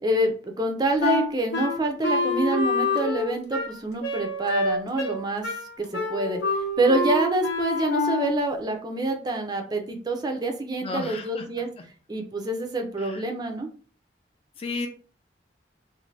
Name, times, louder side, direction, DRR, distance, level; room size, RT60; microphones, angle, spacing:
voice 1, 0.0-5.5 5.8-6.4 6.8-11.7 12.1-13.7, right 2 dB, 25° right, 3 dB, 0.4 m, -26 dB
Wind instrument woodwind instrument, 1.0-8.5, left 2 dB, 80° left, 0.8 m, -27 dB
voice 2, 10.8-11.4 13.0-13.2 14.6-14.9, left 4 dB, 35° left, 4 dB, 0.4 m, -33 dB
2.6 x 2.5 x 3.1 m, 0.41 s
head